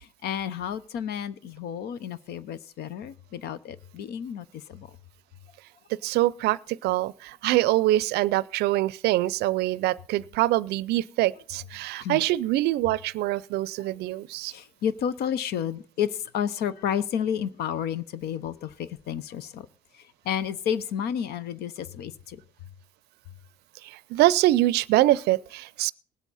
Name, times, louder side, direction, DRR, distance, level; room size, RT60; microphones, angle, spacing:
voice 1, 0.0-4.9 12.0-12.2 14.5-19.7 19.9-22.4, left 8 dB, 75° left, 0.8 m, -31 dB
voice 2, 6.0-14.5 23.8-25.9, right 16 dB, 80° right, 0.5 m, -24 dB
19.5 x 8.3 x 4.1 m
cardioid pair, 110°, 17 cm